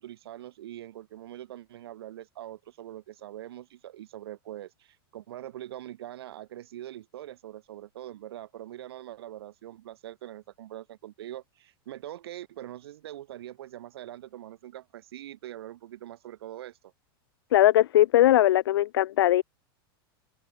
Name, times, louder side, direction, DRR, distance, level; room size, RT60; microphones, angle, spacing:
voice 1, 0.0-16.9, right 13 dB, 85° right, 5.6 m, -43 dB
voice 2, 17.5-19.4, left 14 dB, 90° left, 0.8 m, -20 dB
open air
supercardioid pair, 165°, 13 cm